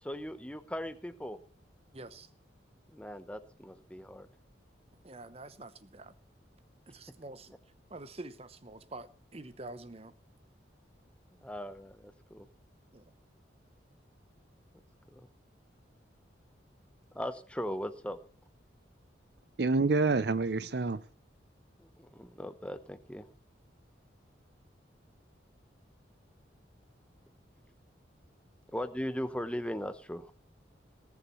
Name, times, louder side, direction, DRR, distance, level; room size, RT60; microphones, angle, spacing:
voice 1, 0.0-1.4 2.9-4.3 11.3-12.5 15.1-15.3 17.1-18.2 21.8-23.3 28.7-30.3, equal, 5° left, 0.8 m, -39 dB
voice 2, 1.9-2.3 5.0-6.1 6.9-7.6 7.9-10.1 12.9-13.1, right 2 dB, 30° right, 0.9 m, -47 dB
voice 3, 19.6-21.0, right 3 dB, 60° right, 0.6 m, -27 dB
19.0 x 7.2 x 7.0 m
head